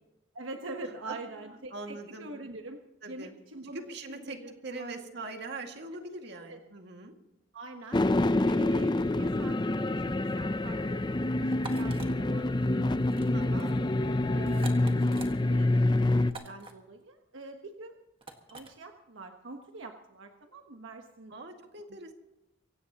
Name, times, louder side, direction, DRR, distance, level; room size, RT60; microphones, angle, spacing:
voice 1, 0.3-2.8 3.1-5.0 6.3-6.6 7.5-8.1 8.4-13.1 13.4-13.7 14.2-17.9 18.5-21.3, right 2 dB, 80° right, 4 dB, 1.3 m, -45 dB
voice 2, 1.1-2.3 3.0-3.3 3.7-4.4 4.6-7.1 13.3-13.9 21.3-22.1, right 2 dB, 60° right, 4 dB, 2.1 m, -42 dB
sound 1, 7.9-16.3, left 2 dB, 25° left, 0.5 m, -27 dB
sound 2, 11.5-12.1 13.0-13.3 13.6-13.8 14.5-15.3 16.3-16.7 18.2-18.7, right 3 dB, 30° right, 1.7 m, -45 dB
24.5 x 17.0 x 3.0 m, 0.96 s
head